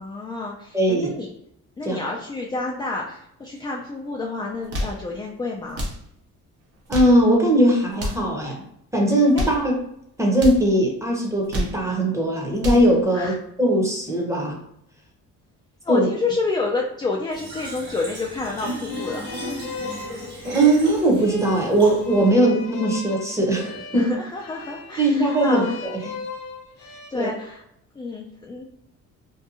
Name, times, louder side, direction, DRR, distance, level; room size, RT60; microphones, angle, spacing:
voice 1, 0.0-1.3 1.8-5.9 9.3-9.4 13.1-13.3 15.8-19.3 23.9-25.8 26.8-27.6 28.0-28.6, left 3 dB, 15° left, -2 dB, 0.3 m, -29 dB
voice 2, 0.7-1.1 1.8-2.0 6.9-8.6 8.9-9.7 10.2-14.6 15.9-16.1 20.5-24.1 25.0-25.6 25.9-26.1 27.1-27.3, right 1 dB, 10° right, -1 dB, 0.7 m, -20 dB
sound 1, 4.5-5.0 5.7-6.0 6.7-7.2 7.9-8.3 9.1-9.6 10.3-10.6 11.3-11.8 12.4-12.9, equal, 55° right, 0.7 m, -28 dB
Fill (with liquid), 17.3-22.3, equal, 35° right, 1.2 m, -35 dB
sound 2, 18.9-27.1, left 4 dB, 80° left, 0.5 m, -37 dB
2.7 x 2.2 x 2.5 m, 0.74 s
cardioid pair, 90°, 30 cm